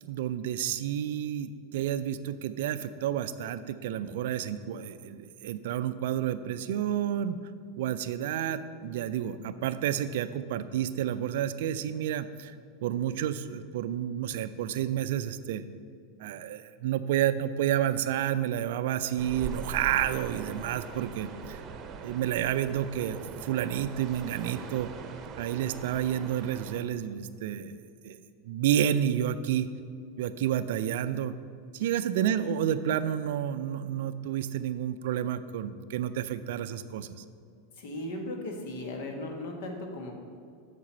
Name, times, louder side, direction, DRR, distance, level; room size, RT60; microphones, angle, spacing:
voice 1, 0.0-7.4 7.8-12.5 12.8-15.6 16.2-21.6 22.0-24.9 25.4-28.2 28.5-29.7 30.2-31.3 31.7-37.2, right 10 dB, 60° right, 13 dB, 0.4 m, -30 dB
sound 1, 19.2-26.8, right 6 dB, 35° right, 0.8 m, -41 dB
voice 2, 37.7-40.1, left 1 dB, 60° left, 3 dB, 1.4 m, -37 dB
8.5 x 6.7 x 5.6 m, 2.3 s
figure-of-eight pair, 85°, 0 cm